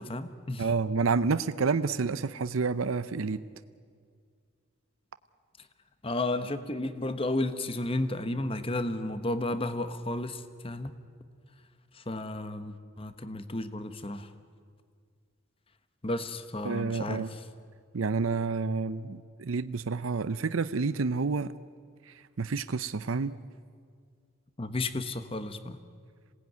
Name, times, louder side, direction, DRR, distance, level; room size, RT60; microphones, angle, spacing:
voice 1, 0.0-0.7 6.0-10.9 11.9-14.3 16.0-17.3 24.6-25.8, left 2 dB, 25° left, 10 dB, 1.1 m, -33 dB
voice 2, 0.6-3.4 16.6-17.3 17.9-21.5 22.1-23.3, right 4 dB, 80° right, 13 dB, 0.6 m, -29 dB
26.5 x 18.5 x 9.4 m, 2.1 s
head